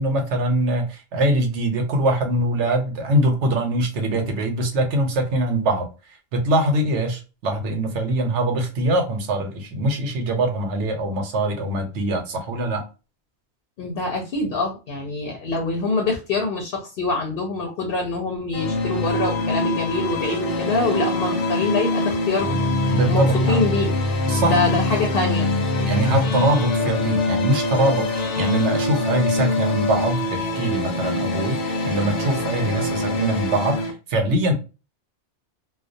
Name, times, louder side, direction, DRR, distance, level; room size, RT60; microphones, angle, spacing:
voice 1, 0.0-5.9 6.3-12.8 22.9-23.6 24.2-24.6 25.8-34.5, right 1 dB, 80° right, 1.0 m, -23 dB
voice 2, 13.8-25.5, left 3 dB, 60° left, 0.8 m, -25 dB
sound 1, 18.5-33.9, left 2 dB, 85° left, 0.9 m, -23 dB
2.3 x 2.2 x 2.5 m
omnidirectional pair, 1.2 m